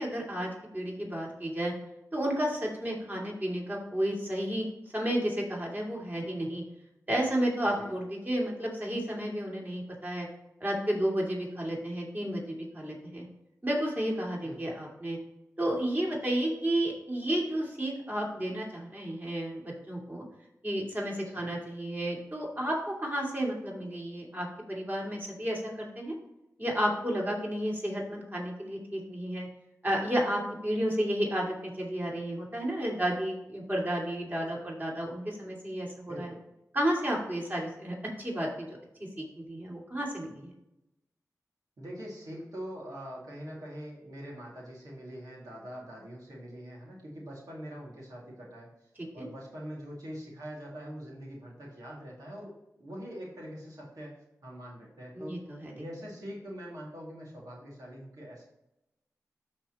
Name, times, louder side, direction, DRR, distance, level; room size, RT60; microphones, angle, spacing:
voice 1, 0.0-1.7 2.1-4.6 4.9-6.6 7.1-10.3 10.6-13.2 13.6-15.2 15.6-20.2 20.6-26.1 26.6-29.5 29.8-36.3 36.7-38.7 39.2-40.5 49.2-49.3 55.1-55.7, right 1 dB, 30° right, -2 dB, 2.8 m, -32 dB
voice 2, 7.6-7.9 14.4-14.8 21.3-21.6 30.9-31.1 36.1-36.4 41.8-48.7 49.1-55.4 55.7-58.4, equal, 80° right, -5 dB, 2.5 m, -43 dB
13.0 x 4.3 x 3.1 m, 0.88 s
cardioid pair, 45°, 6 cm